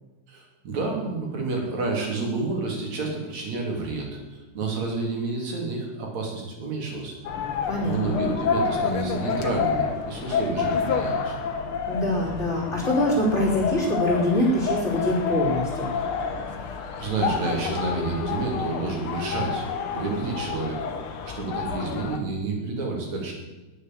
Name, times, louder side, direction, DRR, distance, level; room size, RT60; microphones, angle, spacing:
voice 1, 0.3-7.1 7.8-11.3 16.5-19.7 19.9-20.9 21.3-23.3, right 3 dB, 60° right, 0 dB, 4.5 m, -29 dB
sound 1, 7.2-22.2, left 6 dB, 55° left, 1.7 m, -29 dB
voice 2, 7.7-8.2 11.9-15.9, left 1 dB, 20° left, -4 dB, 4.0 m, -24 dB
19.5 x 6.8 x 7.5 m, 1.1 s
omnidirectional pair, 3.5 m